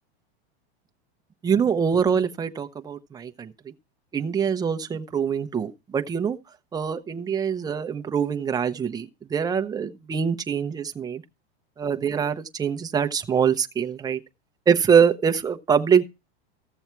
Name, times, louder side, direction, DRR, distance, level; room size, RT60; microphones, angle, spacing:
voice 1, 1.4-3.7 4.1-6.4 6.7-11.2 11.8-14.2 14.7-16.0, right 7 dB, 10° right, 0.7 m, -24 dB
14.5 x 7.1 x 4.5 m
supercardioid pair, 145°, 31 cm